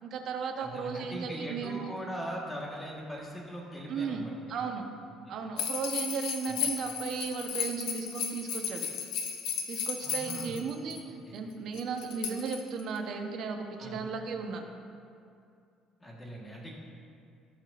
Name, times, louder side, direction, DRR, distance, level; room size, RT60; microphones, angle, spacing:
voice 1, 0.0-1.8 3.9-4.2 4.5-4.8 5.3-8.9 9.7-14.6, right 5 dB, 50° right, 3 dB, 0.9 m, -35 dB
voice 2, 0.6-4.5 5.3-5.4 6.4-6.6 10.0-10.6 11.2-11.3 13.8-14.0 16.0-16.7, equal, 10° left, -3 dB, 1.4 m, -40 dB
sound 1, 5.6-11.0 11.8-13.0, left 7 dB, 85° left, 0.8 m, -34 dB
17.0 x 5.8 x 2.5 m, 2.4 s
cardioid pair, 150°, 0 cm